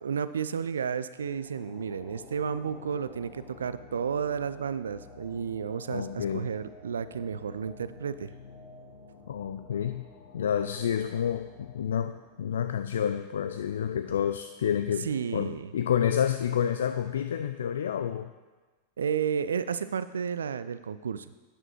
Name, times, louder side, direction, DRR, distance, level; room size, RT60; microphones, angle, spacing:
voice 1, 0.0-8.3 15.0-15.7 19.0-21.3, right 7 dB, 70° right, 14 dB, 0.3 m, -32 dB
sound 1, 1.2-13.7, left 3 dB, 40° left, 1.3 m, -51 dB
voice 2, 5.9-6.5 9.3-10.0 10.3-18.3, left 9 dB, 65° left, 9 dB, 0.3 m, -29 dB
9.9 x 8.9 x 3.1 m, 1.3 s
figure-of-eight pair, 90°, 0 cm